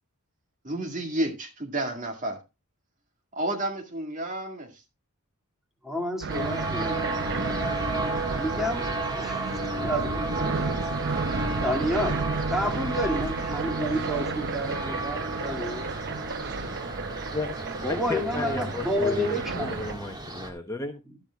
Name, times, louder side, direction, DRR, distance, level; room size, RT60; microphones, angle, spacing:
voice 1, 0.6-2.4 3.3-4.8, right 1 dB, 35° right, 2.1 m, -31 dB
voice 2, 5.8-7.1 8.4-8.8 9.1-10.6 11.6-15.9 17.6-20.0, equal, ahead, 2.2 m, -30 dB
sound 1, 6.2-19.9, right 4 dB, 50° right, 0.6 m, -32 dB
sound 2, 6.3-20.5, right 1 dB, 20° right, 1.7 m, -33 dB
voice 3, 17.1-17.5 17.9-21.0, left 2 dB, 15° left, 0.9 m, -34 dB
12.0 x 12.0 x 2.3 m
head